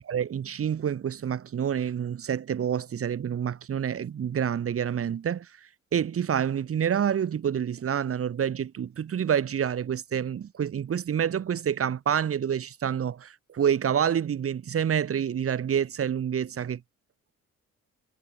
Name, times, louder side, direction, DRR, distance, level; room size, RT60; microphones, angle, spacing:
voice 1, 0.0-16.8, right 8 dB, 50° right, 1.6 m, -28 dB
cardioid pair, 90°, 30 cm